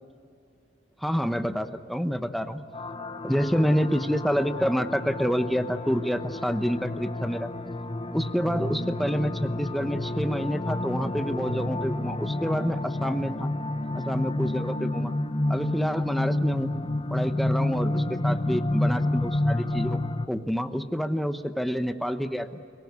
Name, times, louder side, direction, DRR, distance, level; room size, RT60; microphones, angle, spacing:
voice 1, 1.0-2.6 3.2-7.5 8.1-13.5 13.9-15.1 15.5-16.7 17.1-22.5, equal, ahead, 8 dB, 1.0 m, -28 dB
sound 1, 2.7-20.3, left 1 dB, 30° left, 0.8 m, -29 dB
29.0 x 18.0 x 9.6 m, 2.5 s
head